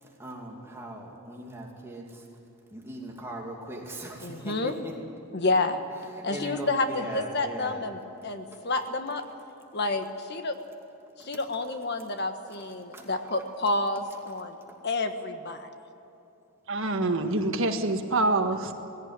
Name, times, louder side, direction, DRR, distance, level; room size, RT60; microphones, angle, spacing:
voice 1, 0.0-2.3 2.7-4.9 6.1-7.9 8.5-8.6 11.2-11.4 12.6-12.7 12.9-13.3, right 1 dB, 10° right, -1 dB, 2.5 m, -40 dB
voice 2, 4.2-4.7 5.3-5.8 6.2-9.2 9.7-10.6 11.2-14.6 14.8-15.7, left 2 dB, 50° left, 7 dB, 1.4 m, -29 dB
voice 3, 16.7-18.7, right 2 dB, 60° right, 5 dB, 1.6 m, -26 dB
19.0 x 17.0 x 9.6 m, 2.9 s
head